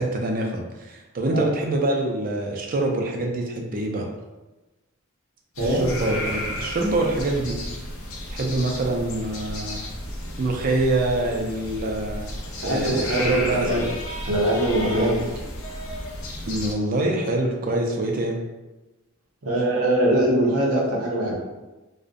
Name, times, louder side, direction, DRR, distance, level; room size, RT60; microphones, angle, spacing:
voice 1, 0.0-4.1 5.6-7.6 8.3-9.8 10.4-12.2 12.6-13.9 14.8-15.2 16.5-18.4, right 2 dB, 40° right, 1 dB, 0.3 m, -25 dB
sound 1, 5.5-16.7, left 1 dB, 70° left, 0.5 m, -33 dB
voice 2, 12.6-13.8 14.2-15.3 19.4-21.3, right 1 dB, 85° right, -3 dB, 0.7 m, -22 dB
2.5 x 2.0 x 2.5 m, 1.1 s
head